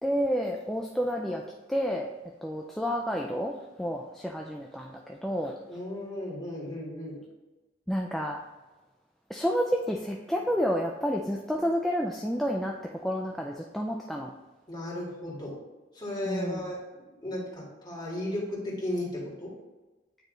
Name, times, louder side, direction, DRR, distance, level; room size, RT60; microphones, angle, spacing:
voice 1, 0.0-1.4 1.7-2.1 2.4-3.5 3.8-5.5 7.9-8.4 9.3-14.3 16.3-16.6, equal, ahead, 0 dB, 0.3 m, -30 dB
voice 2, 5.7-7.2 14.7-15.6 15.9-16.8 17.2-19.5, left 1 dB, 25° left, -6 dB, 1.9 m, -35 dB
8.9 x 3.1 x 3.8 m, 1.1 s
head